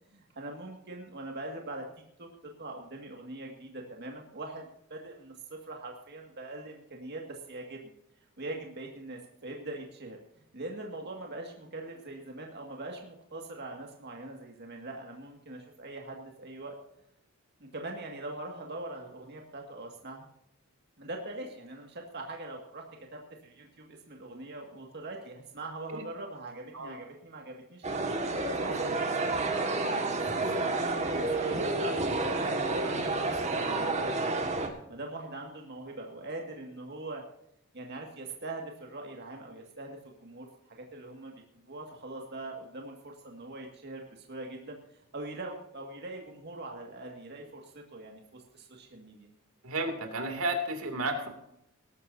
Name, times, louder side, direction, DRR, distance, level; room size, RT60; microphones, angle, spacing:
voice 1, 0.1-1.8 2.2-7.9 8.4-10.2 10.5-16.8 17.6-20.2 21.0-22.8 23.1-34.4 34.9-37.2 37.7-41.3 41.7-49.3, right 2 dB, 50° right, 1 dB, 2.1 m, -42 dB
sound 1, 27.8-34.7, right 2 dB, 35° right, 1.8 m, -30 dB
voice 2, 49.6-51.3, right 1 dB, 85° right, 4 dB, 2.7 m, -32 dB
19.5 x 13.0 x 2.8 m, 0.78 s
head